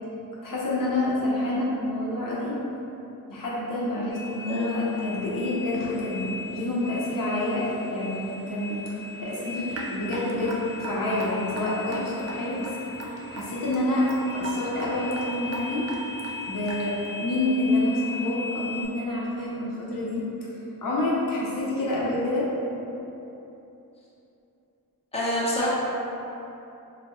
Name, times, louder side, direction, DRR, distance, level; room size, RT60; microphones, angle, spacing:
voice 1, 0.4-2.6 3.3-8.8 9.2-12.7 13.3-14.1 14.3-15.8 16.4-16.9 17.2-20.3 20.8-22.4, left 1 dB, 65° left, -6 dB, 0.7 m, -28 dB
sound 1, 4.1-18.8, left 3 dB, 80° right, 1.4 m, -39 dB
Raindrop / Drip, 9.7-17.1, right 2 dB, 45° right, 0.5 m, -37 dB
voice 2, 25.1-25.7, equal, 15° left, -8 dB, 0.8 m, -27 dB
3.9 x 2.2 x 2.9 m, 3.0 s
wide cardioid pair, 85°, 36 cm